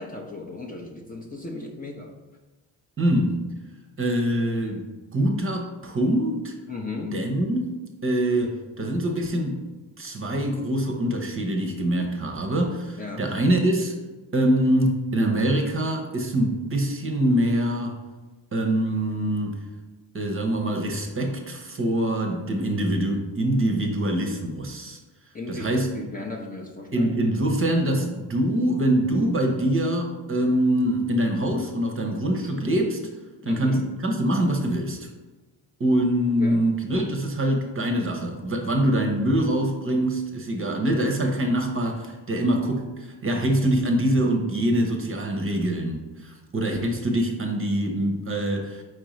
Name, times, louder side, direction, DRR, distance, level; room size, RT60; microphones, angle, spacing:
voice 1, 0.0-2.1 6.7-7.2 13.0-13.2 25.3-27.1 33.4-33.9 36.4-36.6, left 3 dB, 20° left, -1 dB, 0.6 m, -35 dB
voice 2, 3.0-3.3 4.0-4.8 5.1-6.5 7.1-7.7 8.0-9.6 10.0-13.9 14.3-18.0 18.5-19.6 20.1-25.0 25.5-25.9 26.9-33.0 33.4-35.1 35.8-48.8, right 1 dB, 25° right, 3 dB, 0.8 m, -24 dB
4.6 x 3.8 x 3.1 m, 1.2 s
supercardioid pair, 80°, 48 cm